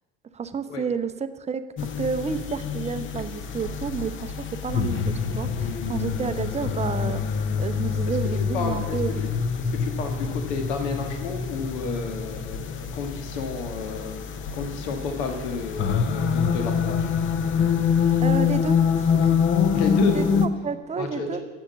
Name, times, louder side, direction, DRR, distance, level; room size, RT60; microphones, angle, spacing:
voice 1, 0.3-1.6 2.0-4.3 4.6-7.2 7.6-9.3 18.2-19.3 20.1-21.4, right 6 dB, 15° right, 11 dB, 0.7 m, -30 dB
sound 1, 1.8-20.5, left 7 dB, 30° left, 0.9 m, -26 dB
voice 2, 8.5-9.0 9.7-14.2 14.5-17.1 19.7-20.4 21.0-21.4, left 4 dB, 60° left, 5 dB, 1.6 m, -31 dB
11.5 x 7.7 x 7.1 m, 1.3 s
figure-of-eight pair, 65°, 38 cm